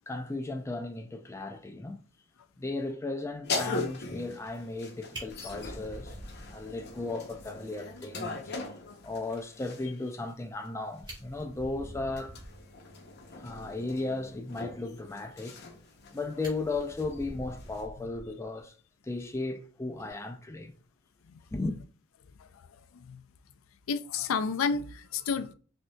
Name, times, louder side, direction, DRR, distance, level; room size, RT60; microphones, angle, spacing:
voice 1, 0.1-2.0 2.6-6.1 6.5-8.5 9.0-12.4 13.4-15.6 16.1-18.7 19.0-20.7 21.5-21.8, left 2 dB, 15° left, 0.4 m, -35 dB
sound 1, 3.4-10.0 11.0-17.9, left 3 dB, 55° left, 0.7 m, -40 dB
Fire, 5.1-7.1 7.4-7.5 7.9-8.0 8.3-8.4 10.6-10.7 11.0-12.7 15.5-16.0 16.4-18.6 19.9-20.1, equal, 20° right, 1.8 m, -46 dB
voice 2, 23.9-25.5, left 5 dB, 90° left, 0.4 m, -30 dB
6.0 x 2.7 x 2.2 m
head